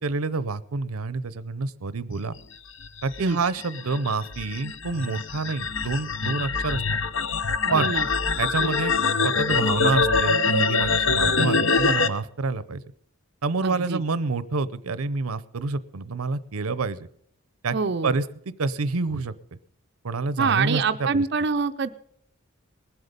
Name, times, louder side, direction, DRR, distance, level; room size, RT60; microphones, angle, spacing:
voice 1, 0.0-2.3 3.0-6.8 7.7-7.9 8.4-8.9 9.2-12.8 13.4-17.1 17.6-17.8 18.0-18.2 18.6-19.3 20.0-21.2, right 4 dB, 85° right, 17 dB, 0.7 m, -27 dB
sound 1, 2.8-12.1, left 4 dB, 60° left, 0.8 m, -24 dB
voice 2, 7.6-8.1 8.6-8.8 13.6-14.0 17.7-18.1 20.4-21.9, right 5 dB, 50° right, 7 dB, 0.5 m, -25 dB
20.0 x 8.0 x 5.3 m, 0.67 s
head